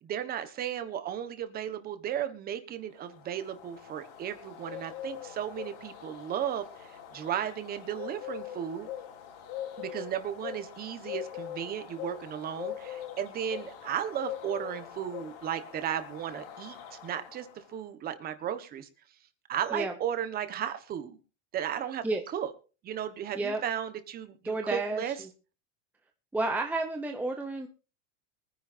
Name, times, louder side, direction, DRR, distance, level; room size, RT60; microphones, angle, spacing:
voice 1, 0.0-8.9 9.8-18.9 19.5-21.2 21.5-22.0 22.3-22.5 22.8-25.2, right 9 dB, 25° right, 10 dB, 1.4 m, -35 dB
sound 1, 3.0-17.6, left 10 dB, 60° left, 4.1 m, -42 dB
voice 2, 24.4-25.0 26.3-27.7, right 2 dB, 5° right, 3 dB, 0.8 m, -30 dB
24.0 x 10.5 x 2.7 m, 0.34 s
supercardioid pair, 170°, 35 cm